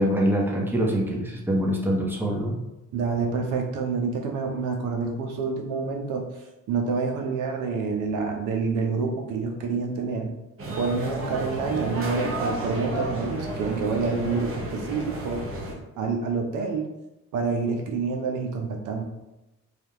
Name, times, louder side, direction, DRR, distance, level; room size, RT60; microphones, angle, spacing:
voice 1, 0.0-2.5, equal, 5° right, -1 dB, 0.7 m, -24 dB
voice 2, 2.9-6.3 6.7-10.3 10.7-15.4 16.0-16.9 17.3-19.0, right 4 dB, 85° right, 2 dB, 0.6 m, -27 dB
sound 1, 10.6-15.7, right 1 dB, 45° right, 0.9 m, -32 dB
3.3 x 2.3 x 2.8 m, 0.95 s
cardioid pair, 90°, 30 cm